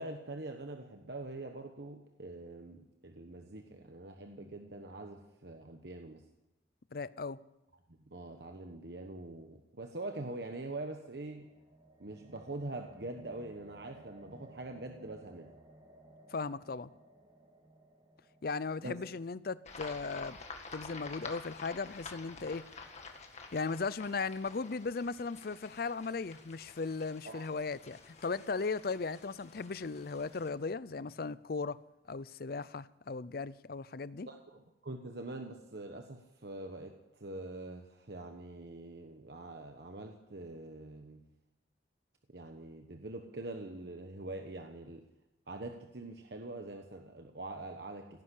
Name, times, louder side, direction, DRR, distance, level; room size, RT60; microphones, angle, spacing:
voice 1, 0.0-6.2 8.0-11.5 12.0-15.5 18.8-19.0 27.2-27.5 34.3-41.2 42.3-45.0 45.5-48.2, right 2 dB, 65° right, 4 dB, 1.2 m, -44 dB
voice 2, 6.9-7.4 16.3-16.9 18.4-20.4 20.7-22.7 23.5-31.8 32.1-34.3, left 4 dB, 55° left, 18 dB, 0.5 m, -37 dB
sound 1, 10.6-20.1, right 1 dB, 25° right, 2.1 m, -59 dB
sound 2, 19.7-30.5, left 4 dB, 40° left, 1.8 m, -50 dB
17.5 x 10.0 x 8.4 m, 0.92 s
head